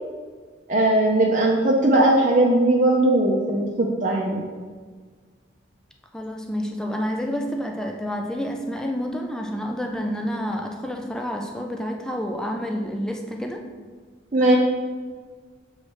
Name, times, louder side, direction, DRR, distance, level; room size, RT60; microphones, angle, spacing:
voice 1, 0.7-4.4 14.3-14.6, right 1 dB, 40° right, -3 dB, 0.6 m, -19 dB
voice 2, 6.1-13.7, equal, 5° left, 2 dB, 0.4 m, -29 dB
7.2 x 3.2 x 4.6 m, 1.5 s
head